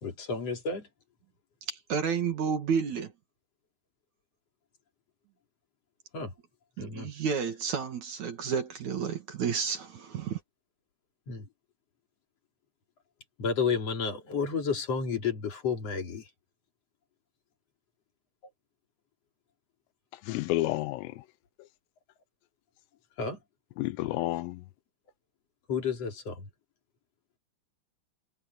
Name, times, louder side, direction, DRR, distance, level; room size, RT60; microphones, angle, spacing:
voice 1, 0.0-0.9 6.1-6.3 6.8-7.1 11.3-11.5 13.4-16.3 23.2-23.4 25.7-26.5, left 5 dB, 35° left, 3.4 m, -31 dB
voice 2, 1.7-3.1 6.8-10.4, right 6 dB, 55° right, 2.1 m, -31 dB
voice 3, 20.3-21.1 23.8-24.6, left 17 dB, 85° left, 3.5 m, -30 dB
omnidirectional pair, 5.9 m